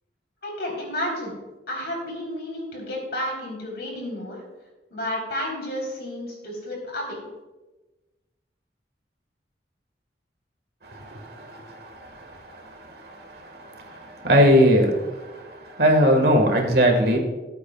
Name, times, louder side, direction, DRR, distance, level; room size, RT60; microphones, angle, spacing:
voice 1, 0.4-1.3 1.7-4.4 4.9-7.2, left 1 dB, 65° left, -2 dB, 3.8 m, -31 dB
voice 2, 14.2-14.9 15.8-17.2, equal, 60° right, 3 dB, 1.7 m, -16 dB
18.5 x 8.6 x 2.4 m, 1.2 s
head